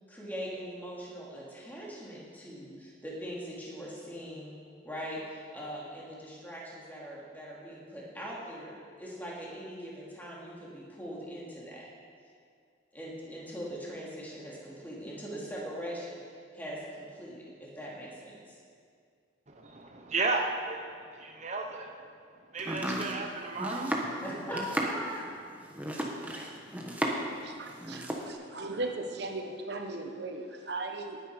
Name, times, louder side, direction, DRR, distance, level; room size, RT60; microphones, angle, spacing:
voice 1, 0.1-4.6 4.8-11.9 12.9-16.2 16.5-18.6 24.2-25.3, equal, 10° left, -5 dB, 2.9 m, -41 dB
voice 2, 19.5-22.0 22.5-24.0 24.8-24.9, right 3 dB, 35° right, 2 dB, 0.9 m, -34 dB
Domestic sounds home sounds, 22.6-27.4 27.7-28.3, right 1 dB, 10° right, 1.3 m, -34 dB
voice 3, 27.4-31.2, right 2 dB, 55° right, 3 dB, 1.3 m, -37 dB
19.0 x 9.7 x 5.1 m, 2.2 s
head